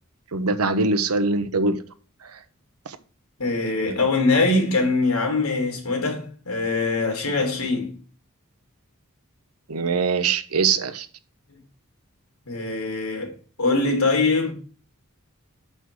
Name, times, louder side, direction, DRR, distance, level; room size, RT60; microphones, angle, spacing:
voice 1, 0.3-1.8 2.2-2.4 2.9-3.0 9.7-11.1, right 4 dB, 90° right, 0.9 m, -23 dB
voice 2, 3.4-8.0 12.5-14.5, left 3 dB, 85° left, 2.9 m, -23 dB
6.4 x 5.5 x 6.0 m
head